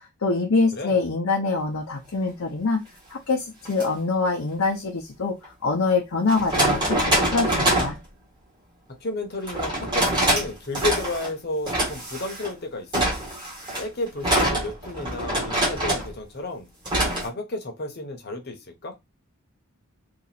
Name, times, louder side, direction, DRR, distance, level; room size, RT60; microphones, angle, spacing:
voice 1, 0.2-2.8 3.1-5.3 5.6-8.0, left 3 dB, 70° left, 0.7 m, -24 dB
sound 1, 3.7-3.8 5.4-5.5 6.3-8.0 9.5-10.5 10.7-11.3 11.7-12.5 12.9-16.1 16.9-17.3, right 1 dB, 20° right, 1.2 m, -24 dB
voice 2, 9.0-13.1 13.8-16.7 17.1-18.9, left 2 dB, 45° left, 0.9 m, -32 dB
2.9 x 2.5 x 4.0 m
head